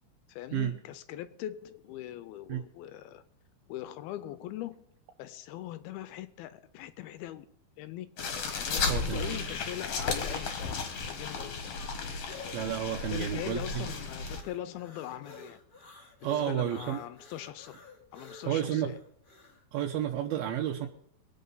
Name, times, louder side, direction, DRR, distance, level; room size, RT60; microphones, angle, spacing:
voice 1, 0.3-3.2 3.7-4.8 5.2-7.5 7.8-8.1 8.5-11.9 13.1-15.6 16.2-17.8 18.1-19.0, left 13 dB, 80° left, 2.5 m, -41 dB
sound 1, 8.2-14.4, left 4 dB, 50° left, 2.2 m, -34 dB
voice 2, 8.9-9.4 12.5-13.8 16.2-17.0 18.5-18.9 19.7-20.9, right 10 dB, 75° right, 2.6 m, -31 dB
sound 2, 12.2-19.6, left 3 dB, 35° left, 0.8 m, -52 dB
22.0 x 8.2 x 5.5 m
omnidirectional pair, 4.5 m